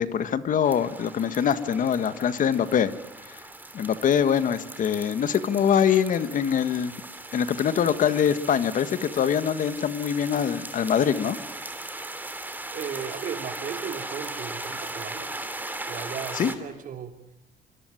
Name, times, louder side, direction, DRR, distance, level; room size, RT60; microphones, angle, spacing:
voice 1, 0.0-2.9 3.3-3.4 3.7-6.9 7.3-11.4 16.4-16.5, left 8 dB, 50° left, 12 dB, 1.7 m, -24 dB
sound 1, 0.6-16.6, right 2 dB, 10° right, 3.0 m, -38 dB
voice 2, 12.7-15.3 15.9-17.2, right 7 dB, 50° right, 6 dB, 3.3 m, -36 dB
26.5 x 24.0 x 9.3 m, 0.86 s
cardioid pair, 110°, 17 cm